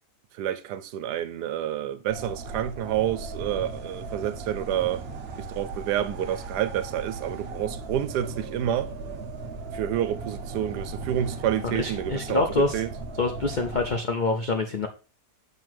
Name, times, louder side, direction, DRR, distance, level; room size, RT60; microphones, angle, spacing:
voice 1, 0.4-5.0 5.4-8.9 9.7-12.9, right 10 dB, 80° right, 1.2 m, -29 dB
sound 1, 2.1-14.0, right 3 dB, 50° right, 0.8 m, -37 dB
voice 2, 11.6-12.8 13.2-14.9, left 3 dB, 60° left, 0.5 m, -26 dB
7.6 x 3.3 x 4.6 m
omnidirectional pair, 1.8 m